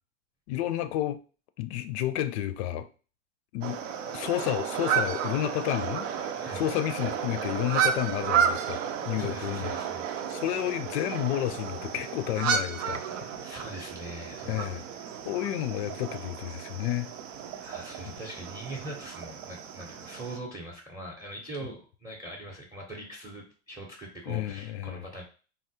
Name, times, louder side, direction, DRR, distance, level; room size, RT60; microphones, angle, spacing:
voice 1, 0.5-1.2 1.6-2.9 3.5-3.9 4.1-9.8 10.3-13.3 14.5-14.8 15.3-17.1 24.3-25.0, left 13 dB, 65° left, 0.5 m, -31 dB
sound 1, 3.6-20.4, right 8 dB, 80° right, 0.5 m, -32 dB
voice 2, 9.2-10.1 13.4-14.9 17.6-25.3, right 1 dB, 10° right, 0.6 m, -42 dB
3.6 x 2.0 x 2.7 m
hypercardioid pair, 115°, 37 cm